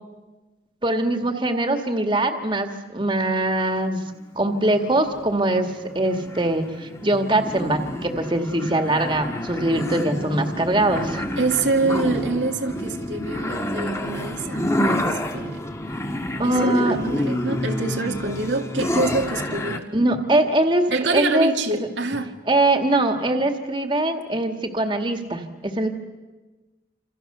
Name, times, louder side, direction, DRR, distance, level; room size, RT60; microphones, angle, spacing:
voice 1, 0.8-4.0 4.4-11.3 16.4-17.0 19.9-21.5 22.5-25.9, right 1 dB, 25° right, 5 dB, 2.0 m, -22 dB
sound 1, 4.2-19.8, left 1 dB, 15° left, 1.5 m, -29 dB
voice 2, 11.4-15.6 16.4-19.9 20.9-22.3, right 3 dB, 80° right, 3 dB, 2.1 m, -26 dB
28.5 x 27.5 x 6.9 m, 1.2 s
head